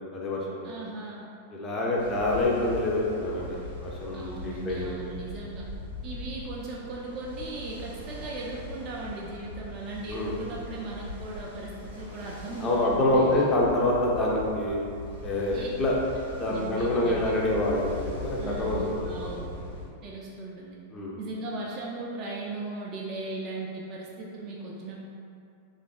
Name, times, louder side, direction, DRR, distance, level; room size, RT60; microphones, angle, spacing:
voice 1, 0.1-0.7 1.5-4.9 10.1-10.4 12.6-14.8 15.2-15.9 16.3-19.7 20.9-21.2, left 1 dB, 25° left, -4 dB, 0.5 m, -27 dB
voice 2, 0.6-1.3 2.0-2.2 4.1-5.6 6.0-13.5 15.5-15.7 16.5-17.3 18.4-19.5 20.0-20.8 21.2-25.0, right 2 dB, 35° right, -4 dB, 0.3 m, -38 dB
Ocean, 2.0-19.9, left 1 dB, 75° right, 0.6 m, -40 dB
3.3 x 2.4 x 2.3 m, 2.5 s
figure-of-eight pair, 90°, 0 cm